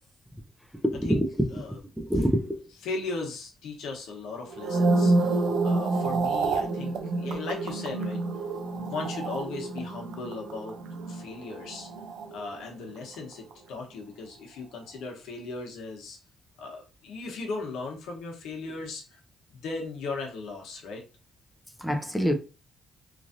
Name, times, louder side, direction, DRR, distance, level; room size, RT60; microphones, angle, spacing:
voice 1, 0.8-1.5 2.0-2.6 21.8-22.3, equal, ahead, 0.5 m, -25 dB
voice 2, 1.5-1.8 2.8-8.2 8.7-10.7 11.1-11.9 12.3-16.2 16.6-19.2 19.5-21.0, left 3 dB, 85° left, 0.9 m, -37 dB
sound 1, 4.5-12.9 13.1-13.5, right 3 dB, 75° right, 0.5 m, -28 dB
3.1 x 2.5 x 2.5 m
cardioid pair, 90°, 0 cm